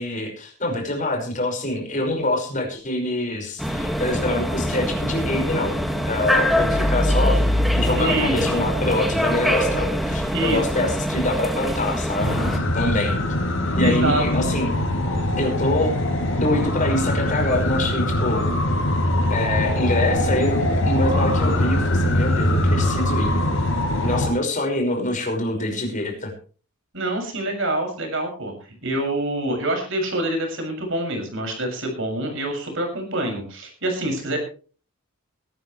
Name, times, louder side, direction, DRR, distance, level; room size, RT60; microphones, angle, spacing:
voice 1, 0.0-5.8 6.1-7.4 7.7-13.2 13.8-14.8 15.4-18.5 19.3-23.3 24.0-26.3, left 1 dB, 35° left, 3 dB, 5.6 m, -25 dB
sound 1, 3.6-12.6, equal, ahead, 2.0 m, -23 dB
voice 2, 7.9-8.6 10.3-10.9 13.8-14.5 26.9-34.4, right 1 dB, 55° right, 3 dB, 6.8 m, -26 dB
sound 2, 12.2-24.3, left 1 dB, 60° left, 6.6 m, -22 dB
22.0 x 13.0 x 3.3 m, 0.39 s
head